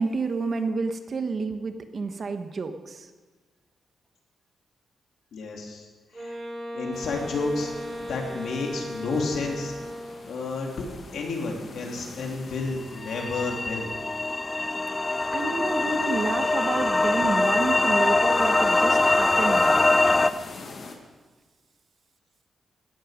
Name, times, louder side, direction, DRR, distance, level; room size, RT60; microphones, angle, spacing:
voice 1, 0.0-3.1 15.1-19.9, right 4 dB, 45° right, 7 dB, 1.3 m, -30 dB
voice 2, 5.3-5.9 6.1-6.4 6.7-7.7 8.0-9.7 10.3-10.8 11.1-14.0, left 3 dB, 75° left, 0 dB, 3.2 m, -31 dB
Wind instrument woodwind instrument, 6.1-10.5, equal, 20° right, 3.5 m, -37 dB
sound 1, 6.9-21.0, left 3 dB, 50° left, 2.0 m, -46 dB
sound 2, 13.0-20.3, left 2 dB, 20° left, 0.5 m, -23 dB
17.5 x 13.5 x 5.2 m, 1.4 s
wide cardioid pair, 130°, 0 cm